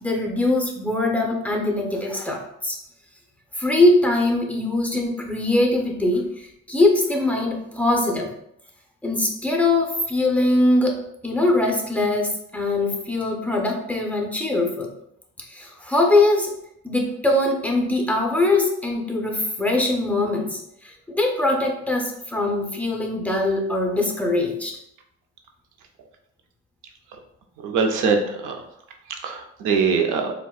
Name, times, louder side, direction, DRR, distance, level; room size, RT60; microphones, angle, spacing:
voice 1, 0.0-2.8 3.6-8.3 9.0-14.9 15.5-16.5 16.8-24.7, left 2 dB, 5° left, 1 dB, 0.6 m, -22 dB
voice 2, 27.6-28.5 29.2-30.3, right 5 dB, 85° right, 3 dB, 0.6 m, -22 dB
4.1 x 2.2 x 2.3 m, 0.77 s
cardioid pair, 90°, 30 cm